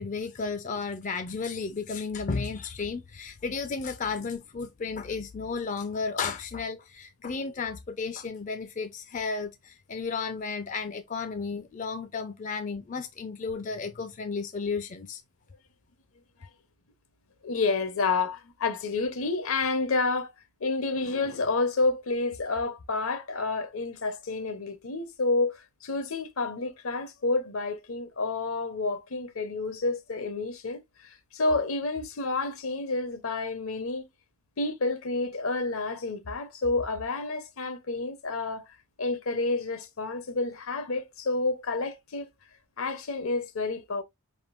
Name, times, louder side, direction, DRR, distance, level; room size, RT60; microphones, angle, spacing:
voice 1, 0.0-15.2, left 4 dB, 35° left, 0.4 m, -33 dB
voice 2, 17.4-20.3 20.6-34.1 34.6-38.7 39.0-42.3 42.8-44.0, left 3 dB, 70° left, 0.8 m, -29 dB
5.0 x 3.6 x 2.4 m
head